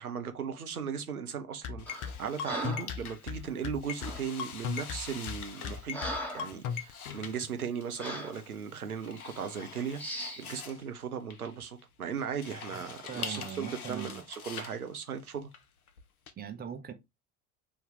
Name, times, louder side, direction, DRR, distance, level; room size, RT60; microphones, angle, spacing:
voice 1, 0.0-6.0 6.3-15.5, right 7 dB, 90° right, 0.6 m, -37 dB
sound 1, 1.6-6.9, left 7 dB, 45° left, 0.7 m, -36 dB
sound 2, 1.8-16.3, left 7 dB, 85° left, 0.6 m, -46 dB
Breathing, 1.9-2.1 2.4-3.0 4.0-4.3 4.9-5.1 5.5-6.6 7.0-7.2 8.0-8.4 9.1-9.3 10.0-10.5, equal, 5° left, 1.3 m, -39 dB
voice 2, 12.7-14.2 16.4-16.9, right 7 dB, 20° right, 0.7 m, -41 dB
3.3 x 2.7 x 3.7 m
figure-of-eight pair, 65°, 43 cm